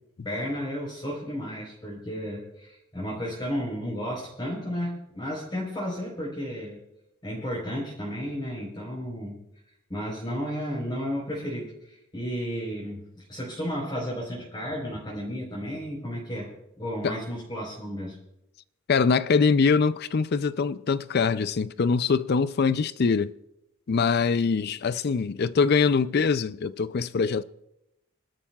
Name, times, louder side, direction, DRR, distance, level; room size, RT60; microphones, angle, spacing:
voice 1, 0.2-6.8 7.2-9.4 9.9-16.5 16.8-18.2, equal, 20° left, 4.1 m, -33 dB
voice 2, 18.9-23.3 23.9-27.4, left 5 dB, 50° left, 0.4 m, -23 dB
27.0 x 12.5 x 2.4 m
head